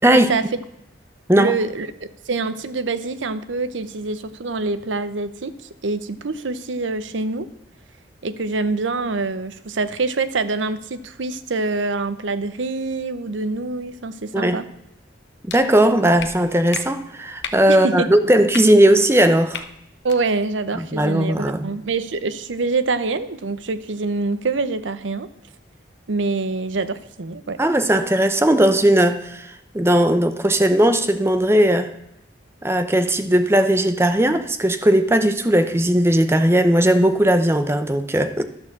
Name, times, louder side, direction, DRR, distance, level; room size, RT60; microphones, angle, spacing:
voice 1, 0.0-0.4 1.4-1.9 2.3-5.5 5.8-7.5 8.2-14.7 17.7-18.1 20.0-25.3 26.1-27.6, right 3 dB, 90° right, 0.7 m, -25 dB
sound 1, 15.5-15.6 16.2-16.3 16.7-16.8 17.4-17.6 18.5-18.6 19.5-19.6 20.0-20.2, left 7 dB, 70° left, 0.9 m, -31 dB
voice 2, 15.5-19.6 20.7-21.7 27.6-31.9 32.6-38.5, right 1 dB, 15° right, 0.6 m, -17 dB
11.5 x 6.5 x 7.2 m
head